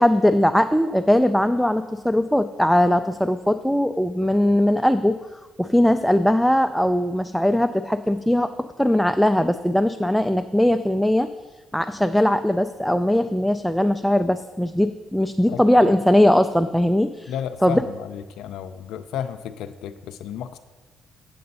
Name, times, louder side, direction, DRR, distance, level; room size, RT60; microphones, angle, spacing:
voice 1, 0.0-5.2 5.6-8.5 8.8-11.3 11.7-17.3 17.6-17.8, left 1 dB, ahead, 8 dB, 0.3 m, -20 dB
voice 2, 15.5-15.9 17.3-20.6, left 9 dB, 85° left, 9 dB, 0.3 m, -33 dB
7.7 x 7.6 x 4.0 m, 1.2 s
cardioid pair, 90°, 0 cm